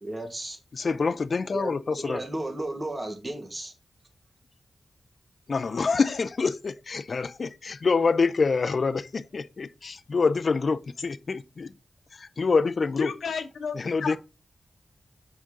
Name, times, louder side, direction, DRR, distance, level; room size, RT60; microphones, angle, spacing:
voice 1, 0.0-0.6 1.5-3.7, right 1 dB, 30° right, 1.8 m, -34 dB
voice 2, 0.7-2.2 5.5-11.7 12.2-13.1 13.8-14.2, left 4 dB, 60° left, 0.5 m, -26 dB
voice 3, 13.0-14.2, left 6 dB, 85° left, 0.9 m, -32 dB
6.2 x 5.2 x 3.7 m
cardioid pair, 65°, 0 cm